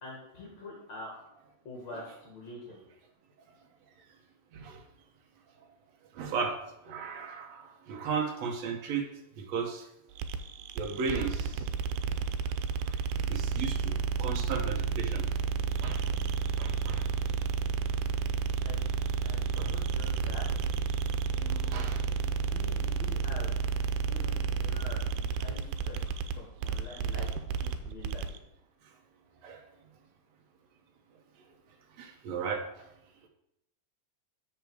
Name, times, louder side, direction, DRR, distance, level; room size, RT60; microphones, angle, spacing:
voice 1, 0.0-1.1 1.7-2.8 18.6-18.9 19.2-20.4 21.2-21.9 22.4-23.5 24.0-26.0 26.3-27.3 27.6-28.3, left 2 dB, 55° left, -3 dB, 2.7 m, -46 dB
voice 2, 6.2-6.6 6.9-9.1 9.4-9.8 10.8-11.6 13.3-13.9 14.2-15.3 15.8-16.0 16.6-17.0 19.6-19.7 21.7-22.0 27.1-27.3 29.4-29.6 32.0-32.6, right 5 dB, 65° right, 3 dB, 1.8 m, -35 dB
sound 1, 10.2-28.4, right 5 dB, 90° right, 2.3 m, -31 dB
7.2 x 7.1 x 4.6 m, 0.85 s
omnidirectional pair, 4.0 m